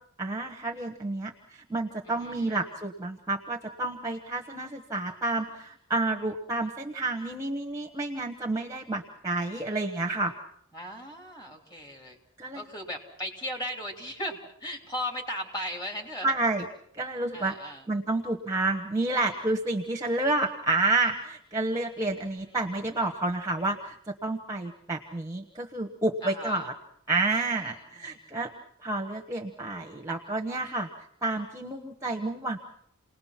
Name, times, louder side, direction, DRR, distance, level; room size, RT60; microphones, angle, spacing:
voice 1, 0.2-10.3 12.4-12.7 16.2-16.6 17.0-17.6 17.9-24.0 24.2-26.7 27.1-28.5 28.8-30.9 31.2-32.6, right 2 dB, 15° right, 2 dB, 1.2 m, -29 dB
voice 2, 2.0-2.6 10.7-12.2 12.5-16.3 17.3-17.9 22.0-22.6 26.2-26.7 27.4-28.2, equal, 20° left, 1 dB, 3.2 m, -37 dB
29.0 x 19.5 x 5.9 m, 0.70 s
head